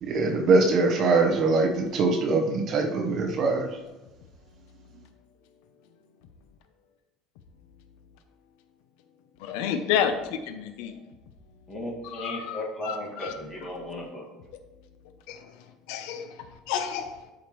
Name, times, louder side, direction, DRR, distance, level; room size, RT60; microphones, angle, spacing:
voice 1, 0.0-3.7, right 3 dB, 40° right, 2 dB, 1.1 m, -22 dB
voice 2, 9.4-10.9 12.1-13.3 15.3-15.5 15.9-16.4 16.7-17.2, left 8 dB, 75° left, 8 dB, 0.7 m, -30 dB
voice 3, 11.7-14.3, left 1 dB, 15° left, -4 dB, 2.0 m, -35 dB
12.0 x 5.1 x 3.1 m, 1.1 s
cardioid pair, 165°, 0 cm